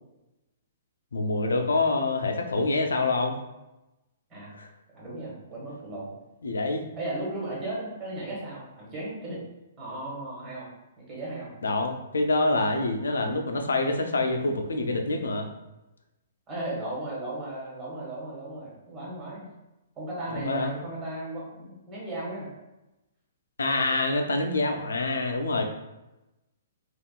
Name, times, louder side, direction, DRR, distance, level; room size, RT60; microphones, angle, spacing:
voice 1, 1.1-3.4 4.6-4.7 6.4-6.8 11.6-15.5 20.3-20.7 23.6-25.6, left 2 dB, 85° left, 4 dB, 0.4 m, -26 dB
voice 2, 4.9-6.1 6.9-9.4 9.8-10.7 11.0-11.5 16.5-19.5 20.0-22.5, right 2 dB, 20° right, -6 dB, 1.4 m, -35 dB
3.5 x 2.4 x 2.2 m, 0.98 s
hypercardioid pair, 130°, 0 cm